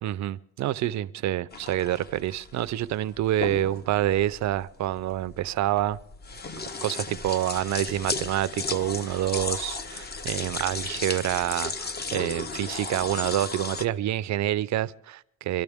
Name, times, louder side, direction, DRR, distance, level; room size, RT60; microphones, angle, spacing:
voice 1, 0.0-6.0 6.8-15.6, right 13 dB, 65° right, 0.6 m, -27 dB
sound 1, 1.5-13.9, left 3 dB, 30° left, 0.9 m, -35 dB
24.0 x 12.5 x 3.6 m
cardioid pair, 90°, 30 cm